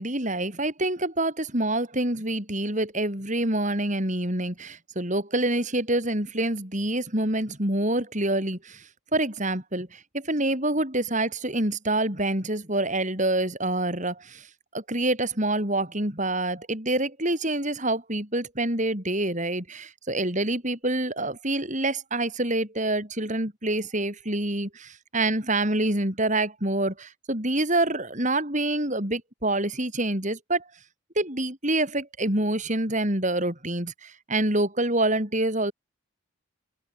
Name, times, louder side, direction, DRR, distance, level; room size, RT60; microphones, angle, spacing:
voice 1, 0.0-14.5 14.7-30.6 31.2-35.7, right 1 dB, 35° right, 7.1 m, -26 dB
open air
head